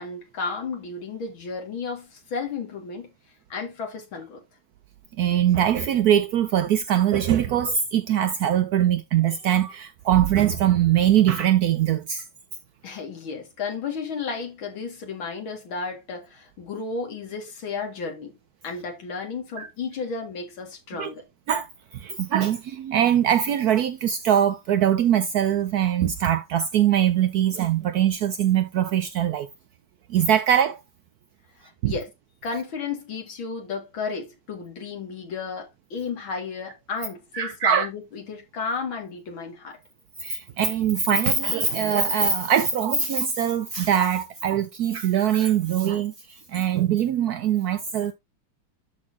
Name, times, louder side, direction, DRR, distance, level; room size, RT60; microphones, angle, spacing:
voice 1, 0.0-3.1 3.5-4.4 12.8-18.3 18.6-21.3 31.6-32.1 32.4-39.8, left 4 dB, 70° left, 2.8 m, -33 dB
voice 2, 5.2-12.3 19.6-19.7 21.0-21.1 21.5-21.7 21.9-29.5 30.1-30.8 31.8-31.9 37.3-37.9 40.2-46.1 46.5-48.1, right 9 dB, 85° right, 0.8 m, -22 dB
12.5 x 4.2 x 2.7 m
omnidirectional pair, 2.3 m